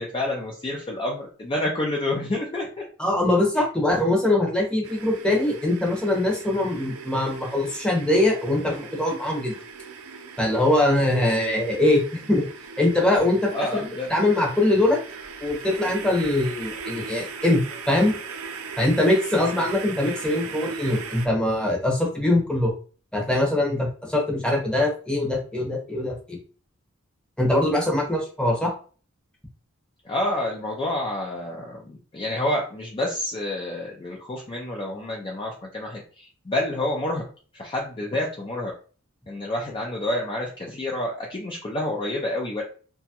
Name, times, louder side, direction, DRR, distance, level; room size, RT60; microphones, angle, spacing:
voice 1, 0.0-2.8 13.5-14.1 30.0-37.2 37.5-38.7 39.3-42.6, left 1 dB, 25° left, -1 dB, 0.4 m, -28 dB
voice 2, 3.0-9.5 10.4-12.0 12.3-12.4 12.8-15.0 15.4-18.1 18.8-22.7 23.1-26.4 27.4-28.7, left 1 dB, 5° left, -1 dB, 0.8 m, -22 dB
sound 1, 4.8-21.3, right 5 dB, 85° right, 0.5 m, -39 dB
2.9 x 2.3 x 2.8 m, 0.39 s
head